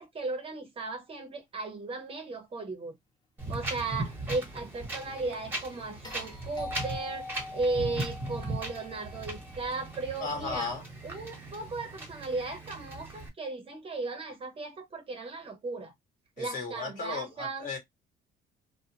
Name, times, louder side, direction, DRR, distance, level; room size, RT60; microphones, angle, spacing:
voice 1, 0.0-3.0 3.5-10.7 11.0-15.9 16.4-17.7, right 3 dB, 35° right, 0.8 m, -36 dB
Wind, 3.4-13.3, right 2 dB, 10° right, 1.2 m, -38 dB
sound 1, 6.0-10.3 12.5-12.6, left 3 dB, 25° left, 1.0 m, -44 dB
voice 2, 10.2-10.8 16.4-17.8, left 4 dB, 55° left, 1.3 m, -35 dB
2.4 x 2.2 x 2.8 m
cardioid pair, 110°, 17 cm